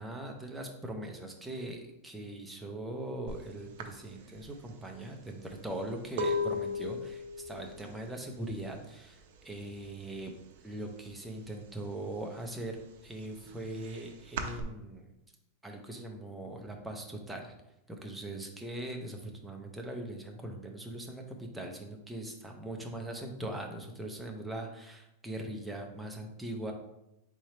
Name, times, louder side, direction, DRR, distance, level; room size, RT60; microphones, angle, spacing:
voice 1, 0.0-10.3 10.6-12.8 13.0-15.1 15.6-17.6 17.9-26.7, right 1 dB, 5° right, 1 dB, 0.4 m, -41 dB
sound 1, 3.3-3.4 3.8-9.5 9.7-10.2 10.5-11.7 12.1-14.6, left 2 dB, 60° right, 0.5 m, -37 dB
3.7 x 3.2 x 4.2 m, 0.87 s
supercardioid pair, 175°, 0 cm